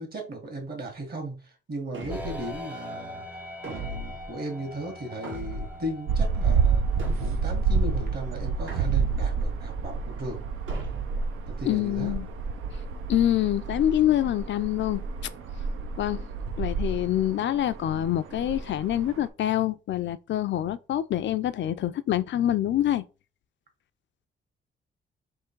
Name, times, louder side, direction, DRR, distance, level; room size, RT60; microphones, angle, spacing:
voice 1, 0.0-6.8 7.2-10.4 11.5-12.2, right 1 dB, 50° right, 1.8 m, -36 dB
sound 1, 1.9-2.6 3.6-4.3 5.2-5.9 7.0-7.6 8.7-9.4 10.7-11.3, right 3 dB, 70° right, 1.6 m, -36 dB
sound 2, 2.1-15.7, left 1 dB, 5° right, 0.6 m, -46 dB
sound 3, 6.1-19.3, right 5 dB, 85° right, 0.6 m, -29 dB
voice 2, 11.7-12.3 13.1-15.3 16.0-16.2 16.6-23.0, left 12 dB, 65° left, 0.4 m, -26 dB
3.6 x 3.1 x 4.5 m
cardioid pair, 105°, 21 cm